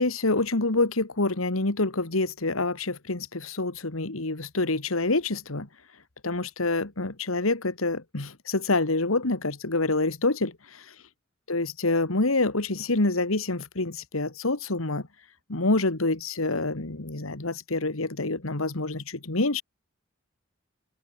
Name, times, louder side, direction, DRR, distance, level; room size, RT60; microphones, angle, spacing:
voice 1, 0.0-5.7 6.2-10.9 11.5-15.1 15.5-19.6, left 2 dB, 85° left, 2.1 m, -27 dB
open air
head